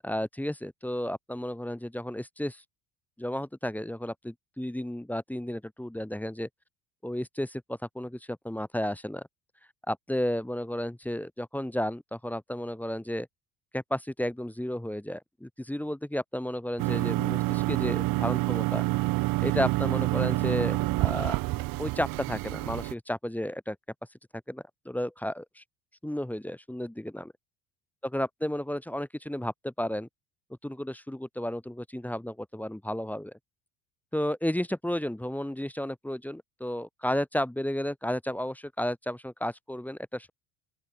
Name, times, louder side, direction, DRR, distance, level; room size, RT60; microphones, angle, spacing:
voice 1, 0.0-2.6 3.2-6.5 7.0-9.3 9.9-13.3 13.7-18.8 19.4-21.4 21.8-23.8 24.5-25.6 26.0-27.3 28.0-30.1 30.6-33.3 34.1-40.3, left 1 dB, 5° left, 2.9 m, -33 dB
sound 1, 16.8-22.9, right 20 dB, 65° right, 2.1 m, -27 dB
open air
hypercardioid pair, 70°, 37 cm